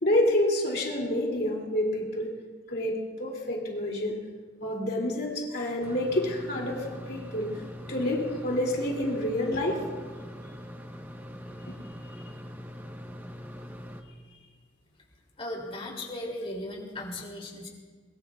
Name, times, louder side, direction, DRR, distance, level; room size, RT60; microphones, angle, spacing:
voice 1, 0.0-2.3 2.7-4.2 4.6-7.5 7.9-9.8, left 1 dB, 60° left, -1 dB, 2.8 m, -28 dB
sound 1, 5.8-14.0, equal, 10° right, 1.1 m, -42 dB
voice 2, 15.4-17.7, left 1 dB, 35° left, -1 dB, 2.9 m, -37 dB
22.5 x 21.5 x 2.4 m, 1.5 s
head